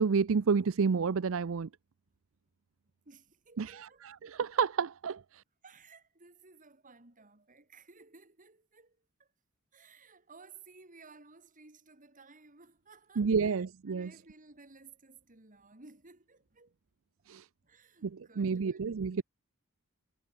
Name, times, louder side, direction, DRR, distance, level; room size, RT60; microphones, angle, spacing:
voice 1, 0.0-1.7 3.6-3.8 4.2-5.2 13.2-14.1 17.3-17.4 18.0-19.2, right 5 dB, 65° right, 0.5 m, -29 dB
voice 2, 3.0-4.2 5.6-9.3 9.7-16.7 17.2-17.3 17.6-18.8 19.2-19.3, right 4 dB, 40° right, 3.2 m, -57 dB
head